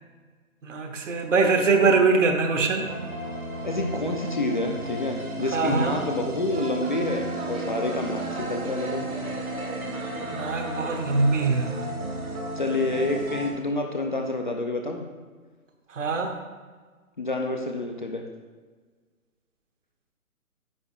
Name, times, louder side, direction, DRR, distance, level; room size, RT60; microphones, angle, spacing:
voice 1, 0.6-2.9 5.5-6.0 10.2-11.7 16.0-16.3, right 4 dB, 60° right, 4 dB, 1.0 m, -22 dB
sound 1, 2.8-13.5, right 1 dB, 75° right, 1.5 m, -33 dB
voice 2, 3.6-9.1 12.6-15.1 17.2-18.2, left 2 dB, 35° left, 3 dB, 0.4 m, -28 dB
9.6 x 3.7 x 3.6 m, 1.4 s
figure-of-eight pair, 145°, 43 cm